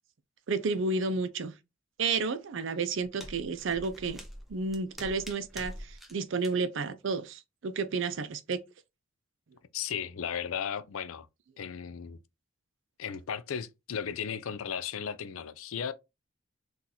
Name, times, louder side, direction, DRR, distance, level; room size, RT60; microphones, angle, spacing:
voice 1, 0.5-1.5 2.0-4.2 4.5-8.6, right 4 dB, 60° right, 0.5 m, -31 dB
sound 1, 2.6-6.1 6.4-6.5, equal, ahead, 0.5 m, -45 dB
voice 2, 9.7-11.3 11.6-12.2 13.0-15.9, left 7 dB, 75° left, 0.4 m, -35 dB
3.9 x 2.4 x 2.8 m
head